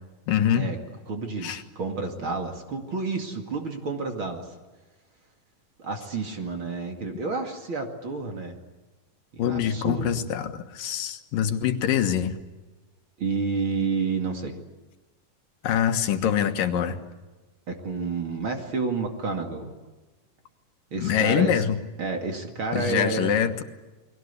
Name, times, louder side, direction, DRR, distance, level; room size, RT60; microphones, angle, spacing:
voice 1, 0.3-0.7 1.4-1.6 9.4-12.4 15.6-17.0 21.0-21.8 22.7-23.6, left 9 dB, 80° left, 7 dB, 3.1 m, -24 dB
voice 2, 1.1-4.5 5.8-8.6 9.3-10.2 13.2-14.6 17.7-19.7 20.9-21.6 22.0-23.5, right 4 dB, 40° right, 4 dB, 2.8 m, -30 dB
30.0 x 21.5 x 8.3 m, 1.2 s
omnidirectional pair, 3.8 m